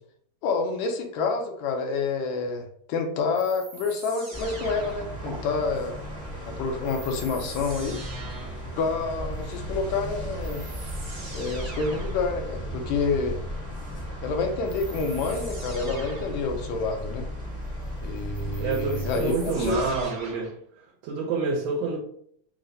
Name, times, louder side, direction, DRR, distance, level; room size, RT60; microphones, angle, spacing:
voice 1, 0.4-6.0 6.5-8.0 8.8-10.7 11.3-13.4 14.2-17.3 18.0-19.8, left 4 dB, 80° left, 1.9 m, -28 dB
sound 1, 3.3-5.4 6.8-8.7 9.9-10.0 10.4-12.3 14.6-16.4 18.1-20.6, right 3 dB, 55° right, 1.0 m, -43 dB
sound 2, 4.3-20.0, equal, 35° left, 0.4 m, -36 dB
voice 2, 18.6-20.6 21.0-22.0, right 4 dB, 75° right, 1.7 m, -28 dB
4.7 x 2.1 x 3.8 m
omnidirectional pair, 3.3 m